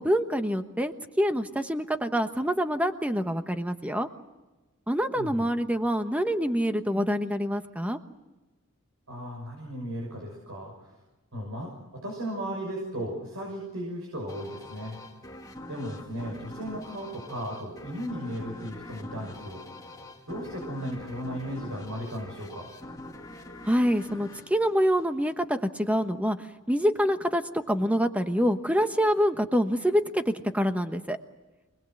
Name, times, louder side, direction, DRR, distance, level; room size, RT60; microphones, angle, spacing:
voice 1, 0.0-4.1 4.9-8.0 23.6-26.4 26.7-27.4 27.7-31.2, equal, 5° right, 8 dB, 1.1 m, -26 dB
voice 2, 5.1-5.5 9.1-11.0 11.3-11.7 12.0-15.0 15.7-19.6 20.3-22.7, equal, 75° right, 0 dB, 6.3 m, -36 dB
sound 1, 14.3-25.5, left 1 dB, 15° left, 2.2 m, -44 dB
25.5 x 20.5 x 7.9 m, 1.1 s
head